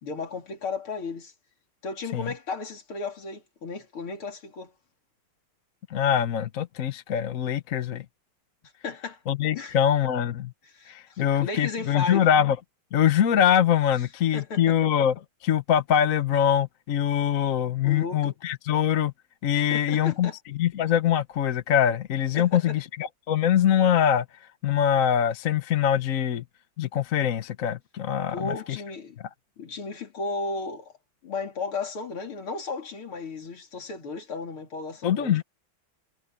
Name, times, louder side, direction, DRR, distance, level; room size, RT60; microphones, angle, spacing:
voice 1, 0.0-1.3 1.8-4.7 8.8-9.2 9.5-9.8 10.6-12.3 14.3-14.8 17.8-18.3 19.5-20.4 22.3-22.8 28.3-29.2 29.6-30.9 31.2-35.4, left 4 dB, 85° left, 4.0 m, -34 dB
voice 2, 5.9-8.0 9.3-10.5 10.9-12.6 12.9-15.1 15.4-19.1 19.4-20.3 20.6-24.2 24.6-26.4 26.8-28.5 35.0-35.4, left 9 dB, 50° left, 1.1 m, -23 dB
omnidirectional pair, 2.3 m